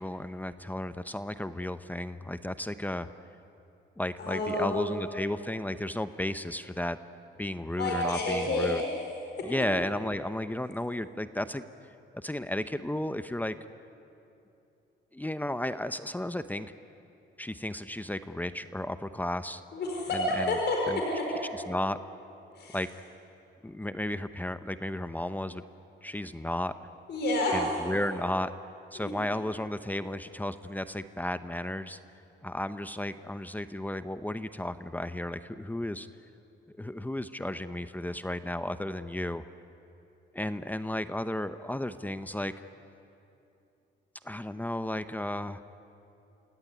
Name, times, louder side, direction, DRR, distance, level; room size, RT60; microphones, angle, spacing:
voice 1, 0.0-3.1 4.0-7.0 7.4-8.8 9.4-11.6 12.2-13.6 15.1-16.7 17.4-19.6 20.1-20.4 20.9-21.0 21.7-22.0 22.7-22.9 23.6-25.6 26.0-26.7 27.5-28.5 28.9-32.0 32.4-36.1 36.8-39.4 40.3-42.5 44.2-45.6, left 1 dB, 10° left, 12 dB, 0.8 m, -33 dB
voice 2, 4.2-4.9 7.8-8.8 19.7-21.3 22.5-22.8 27.1-27.6 28.9-29.1, left 2 dB, 60° left, -1 dB, 5.1 m, -29 dB
27.5 x 17.5 x 9.7 m, 2.8 s
cardioid pair, 90°, 20 cm